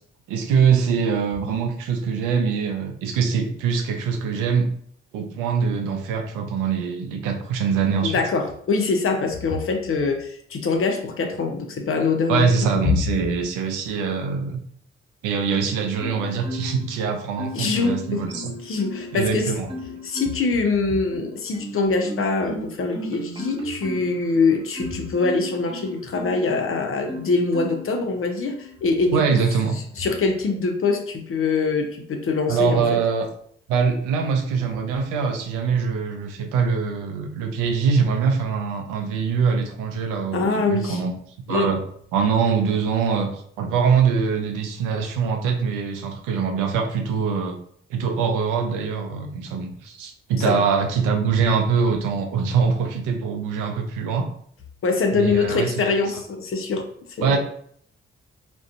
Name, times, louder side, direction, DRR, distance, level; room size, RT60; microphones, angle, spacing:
voice 1, 0.3-4.7 5.1-8.2 12.3-14.6 15.2-18.5 19.1-19.7 29.1-29.8 32.5-33.3 33.7-41.1 41.5-41.8 42.1-47.6 47.9-54.3 55.1-56.0 57.2-57.4, right 6 dB, 75° right, 4 dB, 0.5 m, -23 dB
voice 2, 8.0-12.5 17.5-18.3 18.6-19.5 20.0-29.4 29.9-33.0 40.3-41.0 41.5-41.7 50.4-50.6 54.8-56.8 57.2-57.4, left 4 dB, 45° left, 4 dB, 0.6 m, -23 dB
Marimba xylophone, 16.0-17.0 17.4-19.2 19.7-20.6 21.1-26.5 27.1-27.9 28.5-28.7, left 1 dB, 15° right, 0.8 m, -35 dB
2.4 x 2.2 x 2.5 m, 0.62 s
hypercardioid pair, 40°, 31 cm